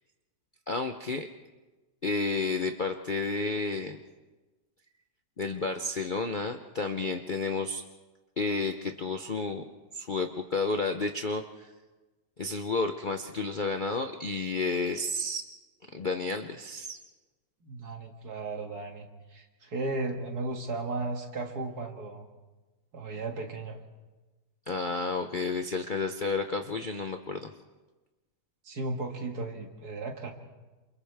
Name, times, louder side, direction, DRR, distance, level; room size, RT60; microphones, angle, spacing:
voice 1, 0.7-1.3 2.0-4.0 5.4-7.8 8.4-9.6 9.9-11.7 12.4-15.4 15.9-17.0 24.7-27.5, left 3 dB, 45° left, 5 dB, 0.6 m, -31 dB
voice 2, 17.6-22.3 22.9-23.8 28.6-30.3, right 3 dB, 65° right, 3 dB, 2.4 m, -35 dB
28.5 x 28.0 x 3.5 m, 1.2 s
omnidirectional pair, 1.8 m